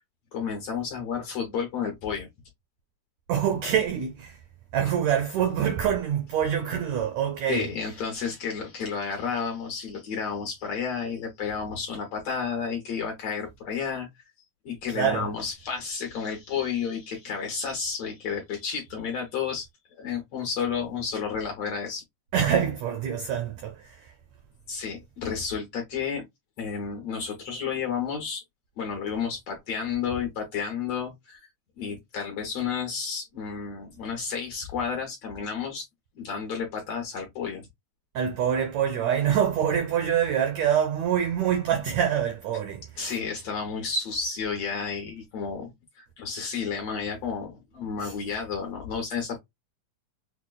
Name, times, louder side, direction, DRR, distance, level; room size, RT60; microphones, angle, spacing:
voice 1, 0.3-2.3 7.5-14.1 14.7-19.7 20.0-22.0 24.7-26.3 26.6-28.4 28.8-31.4 31.8-35.9 36.2-37.7 43.0-49.4, left 6 dB, 70° left, 1.6 m, -31 dB
voice 2, 3.3-4.4 4.7-7.7 14.9-15.3 22.3-24.1 38.1-43.1 48.0-48.1, right 9 dB, 85° right, 1.5 m, -25 dB
6.0 x 2.2 x 2.2 m
omnidirectional pair, 3.8 m